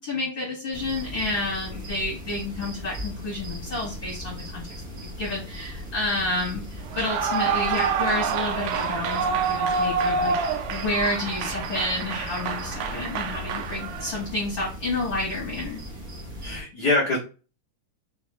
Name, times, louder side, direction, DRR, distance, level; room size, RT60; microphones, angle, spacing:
voice 1, 0.0-4.6 4.9-15.8, left 2 dB, 40° left, -8 dB, 2.1 m, -30 dB
sound 1, 0.7-16.6, equal, 50° right, 1.0 m, -38 dB
Clapping / Cheering / Applause, 6.9-14.3, right 5 dB, 80° right, 2.0 m, -27 dB
voice 2, 16.4-17.2, left 2 dB, 75° left, -6 dB, 0.9 m, -25 dB
5.0 x 3.1 x 3.3 m, 0.34 s
omnidirectional pair, 3.8 m